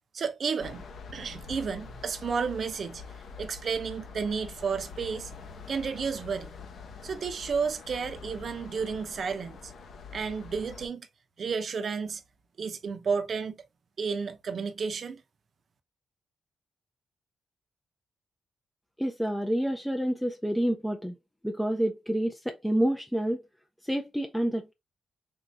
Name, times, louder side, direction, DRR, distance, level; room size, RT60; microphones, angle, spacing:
voice 1, 0.1-0.9 1.1-3.0 3.4-5.3 5.7-6.5 7.0-9.7 10.1-11.1 11.4-12.2 12.6-13.6 14.0-15.2, right 5 dB, 55° right, 0.7 m, -32 dB
sound 1, 0.6-10.9, left 5 dB, 65° left, 0.8 m, -45 dB
voice 2, 19.0-21.1 21.4-23.4 23.8-24.7, right 1 dB, ahead, 0.5 m, -28 dB
3.7 x 2.7 x 3.3 m
cardioid pair, 100°, 0 cm